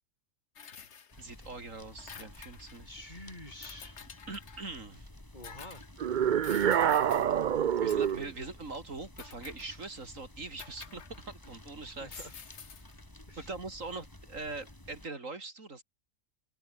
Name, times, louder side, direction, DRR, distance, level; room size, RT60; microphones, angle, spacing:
sound 1, 0.6-1.5 1.8-2.9 3.6-4.7 5.4-5.9 6.4-7.3 7.9-8.3 9.2-9.9 10.6-11.6 12.1-13.0, left 6 dB, 60° left, 1.6 m, -50 dB
sound 2, 1.1-15.1, left 1 dB, 15° left, 2.8 m, -52 dB
voice 1, 1.2-3.0 4.3-5.1 7.8-12.2 13.4-15.8, right 3 dB, 75° right, 3.8 m, -42 dB
voice 2, 2.8-4.0 5.3-5.8 8.4-8.5 11.8-12.6 13.3-13.5, left 1 dB, 35° left, 4.9 m, -48 dB
Heavy metal scream, 6.0-8.3, right 9 dB, 50° right, 0.6 m, -26 dB
open air
omnidirectional pair, 1.4 m